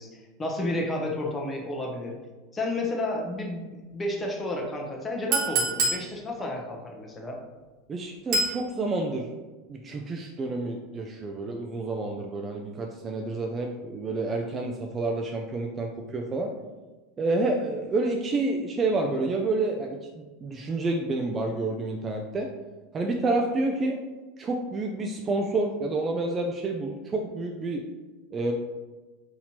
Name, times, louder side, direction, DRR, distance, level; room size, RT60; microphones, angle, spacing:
voice 1, 0.0-2.2 2.5-7.4, left 1 dB, 15° left, 0 dB, 0.7 m, -31 dB
Chink clink, 5.3-6.0 8.3-8.6, right 3 dB, 55° right, 1.0 m, -25 dB
voice 2, 7.9-9.3 9.7-16.5 17.2-22.5 22.9-24.0 24.4-27.8 28.3-28.5, right 2 dB, 25° right, 1 dB, 0.3 m, -29 dB
4.1 x 2.7 x 2.9 m, 1.2 s
supercardioid pair, 125°, 0 cm